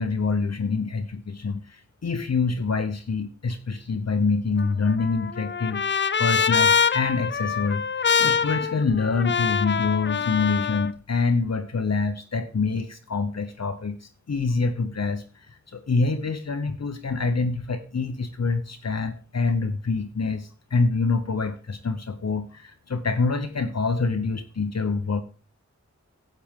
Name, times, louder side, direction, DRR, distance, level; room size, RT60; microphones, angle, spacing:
voice 1, 0.0-5.8 6.2-7.8 8.1-25.2, left 4 dB, 60° left, 7 dB, 0.8 m, -26 dB
Trumpet, 4.6-10.9, left 6 dB, 40° left, 0.4 m, -24 dB
11.5 x 7.9 x 3.6 m, 0.37 s
wide cardioid pair, 50°, 29 cm